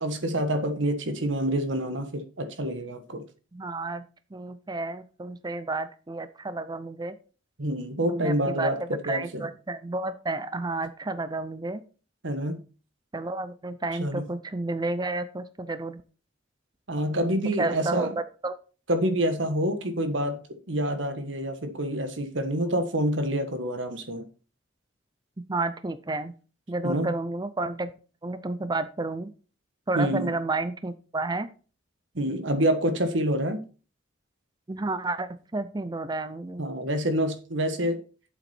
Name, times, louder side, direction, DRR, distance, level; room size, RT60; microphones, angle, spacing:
voice 1, 0.0-3.2 7.6-9.5 12.2-12.6 14.0-14.2 16.9-18.1 18.9-24.2 26.8-27.1 29.9-30.3 32.1-33.6 36.6-38.0, right 1 dB, 75° right, 1.5 m, -27 dB
voice 2, 3.5-4.0 4.3-7.2 8.1-11.8 13.1-16.0 17.6-18.1 18.4-18.5 25.5-26.3 26.7-27.9 28.2-29.3 29.9-31.5 34.7-36.7, right 2 dB, 20° right, 0.6 m, -31 dB
8.3 x 7.2 x 4.4 m
head